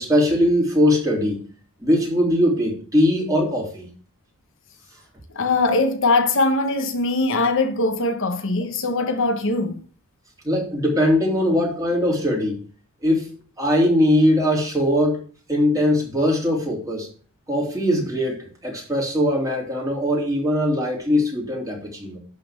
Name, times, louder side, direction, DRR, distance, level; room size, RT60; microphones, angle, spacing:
voice 1, 0.0-1.4 1.8-3.9 10.4-12.6 13.0-13.3 13.6-15.2 15.5-17.1 17.5-22.2, left 1 dB, 15° right, 3.2 m, -20 dB
voice 2, 5.3-9.8, left 3 dB, 60° left, 1.2 m, -21 dB
11.5 x 4.3 x 7.4 m
head